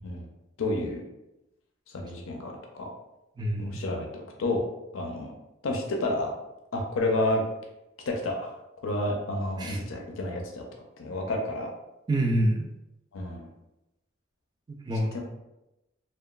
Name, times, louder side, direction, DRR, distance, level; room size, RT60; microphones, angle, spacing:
voice 1, 0.6-1.0 1.9-2.9 3.6-4.6 4.9-5.3 5.6-6.3 6.7-7.4 8.1-8.5 8.8-10.6 11.0-11.7 13.1-13.5 15.1-15.2, left 2 dB, 90° left, 1 dB, 0.5 m, -30 dB
voice 2, 3.4-3.8 9.6-9.8 12.1-12.7 14.9-15.2, right 1 dB, 20° right, 0 dB, 0.3 m, -26 dB
2.8 x 2.2 x 2.3 m, 0.93 s
head